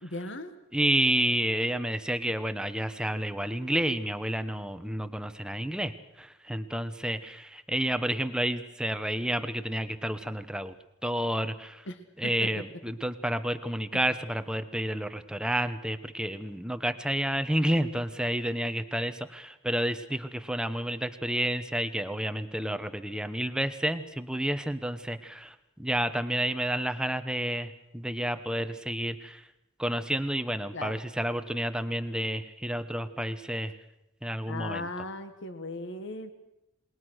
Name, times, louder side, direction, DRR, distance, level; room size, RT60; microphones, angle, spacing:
voice 1, 0.0-0.5 11.8-12.5 30.7-31.0 34.5-36.3, left 2 dB, 65° left, 9 dB, 1.7 m, -37 dB
voice 2, 0.7-10.7 11.0-11.8 12.2-29.4 29.8-33.7 34.2-34.9, right 1 dB, 5° right, 10 dB, 1.1 m, -30 dB
28.0 x 20.5 x 6.5 m, 0.89 s
head